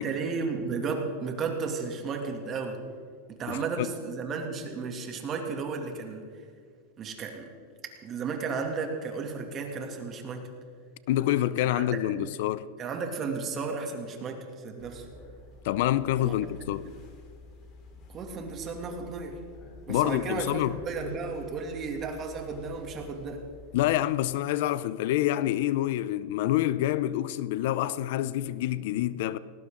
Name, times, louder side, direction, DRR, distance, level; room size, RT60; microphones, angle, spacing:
voice 1, 0.0-2.8 3.3-6.3 7.0-7.5 8.0-10.5 11.6-11.8 12.1-12.3 12.8-15.1 16.2-16.5 16.8-17.0 18.1-19.4 19.9-23.5, right 4 dB, 30° right, 2.5 m, -34 dB
voice 2, 3.5-3.9 11.1-12.7 15.6-16.9 19.9-20.8 23.7-29.4, left 13 dB, 65° left, 0.6 m, -27 dB
sound 1, 14.8-23.9, left 2 dB, 40° left, 3.7 m, -48 dB
19.0 x 18.5 x 3.8 m
supercardioid pair, 135°, 0 cm